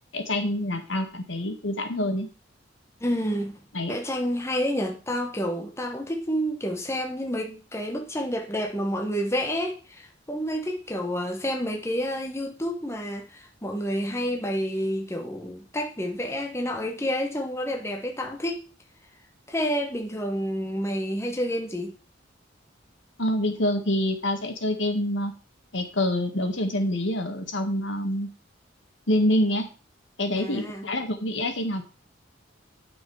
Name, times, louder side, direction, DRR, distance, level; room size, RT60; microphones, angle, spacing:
voice 1, 0.1-2.3 3.7-3.9 23.2-25.3 25.7-28.3 29.1-29.7 30.2-31.8, left 1 dB, 70° left, 1.7 m, -26 dB
voice 2, 3.0-3.6 3.9-18.6 19.5-22.0 30.4-30.8, equal, 15° left, 1.2 m, -29 dB
9.8 x 6.2 x 4.8 m
head